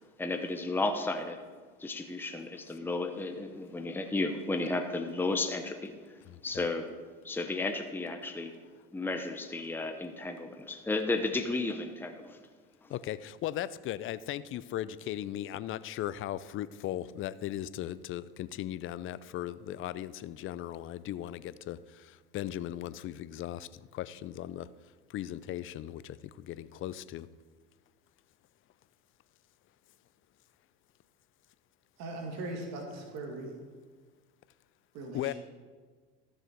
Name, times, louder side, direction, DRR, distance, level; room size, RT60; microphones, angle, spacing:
voice 1, 0.2-1.4 1.8-5.9 6.4-6.9 7.2-8.5 8.9-12.4, left 2 dB, 5° left, 6 dB, 0.8 m, -33 dB
voice 2, 6.3-6.6 12.9-24.7 25.1-27.3 35.1-35.3, left 12 dB, 45° left, 17 dB, 0.5 m, -38 dB
voice 3, 32.0-33.5 34.9-35.3, right 2 dB, 65° right, 2 dB, 2.1 m, -39 dB
13.5 x 6.6 x 4.6 m, 1.5 s
hypercardioid pair, 85°, 30 cm